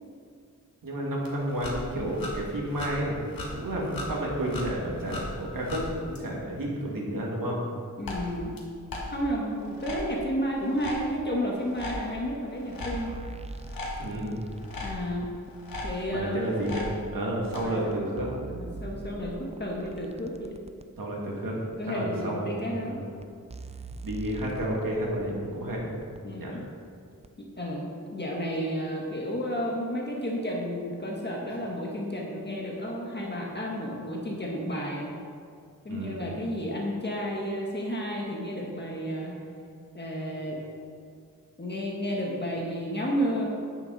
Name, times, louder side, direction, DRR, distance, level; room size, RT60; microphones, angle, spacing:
voice 1, 0.8-7.6 14.0-14.4 16.1-18.3 21.0-21.6 21.9-23.1 24.0-25.9 26.4-26.6 35.9-36.2, right 1 dB, 75° right, -3 dB, 2.5 m, -31 dB
sound 1, 1.2-6.2 8.0-8.6 8.9-16.9 17.5-18.0, left 1 dB, 90° left, 1.9 m, -38 dB
voice 2, 8.0-8.6 9.1-13.1 14.8-15.3 15.8-16.6 17.6-17.8 18.1-20.6 21.8-23.0 26.2-26.6 27.4-35.1 35.8-39.3 39.9-40.6 41.6-43.6, equal, 30° left, -2 dB, 1.6 m, -32 dB
sound 2, 12.8-15.6 16.5-16.6 17.4-17.5 17.9-20.9 21.7-21.8 22.7-22.8 23.2-23.3 23.5-26.2 27.2-27.3, right 3 dB, 20° right, 0.5 m, -43 dB
10.5 x 9.5 x 4.2 m, 2.3 s
wide cardioid pair, 115°, 33 cm